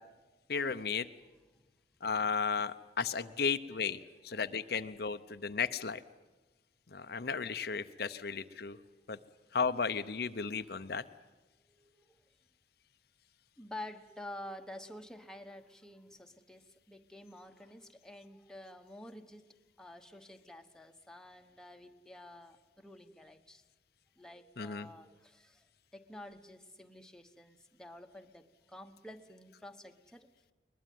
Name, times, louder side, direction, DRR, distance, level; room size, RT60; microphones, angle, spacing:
voice 1, 0.5-1.1 2.0-6.0 6.9-8.8 9.1-9.2 9.5-11.0 24.6-24.9, left 5 dB, 55° left, 10 dB, 0.7 m, -34 dB
voice 2, 11.7-12.2 13.6-23.6 24.2-30.3, left 1 dB, 5° left, 5 dB, 1.1 m, -50 dB
22.0 x 21.0 x 9.3 m, 1.2 s
head